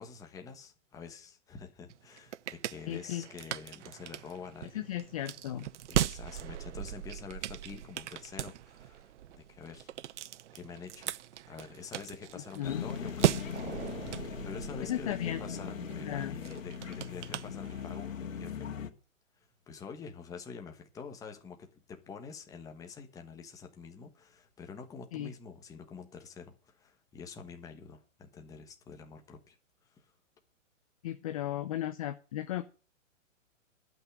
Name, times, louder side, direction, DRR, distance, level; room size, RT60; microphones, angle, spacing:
voice 1, 0.0-4.8 5.9-9.9 10.5-11.1 11.5-18.7 19.7-29.6 29.8-30.1, left 5 dB, 10° left, 1.2 m, -47 dB
sound 1, 1.9-18.1, right 12 dB, 65° right, 0.6 m, -38 dB
voice 2, 2.9-3.2 4.7-5.7 12.5-12.8 14.8-15.4 16.0-16.4 25.1-25.3 31.0-32.6, left 12 dB, 30° left, 0.6 m, -35 dB
sound 2, 12.6-18.9, left 6 dB, 80° left, 1.9 m, -40 dB
12.0 x 6.0 x 9.2 m
hypercardioid pair, 160°, 39 cm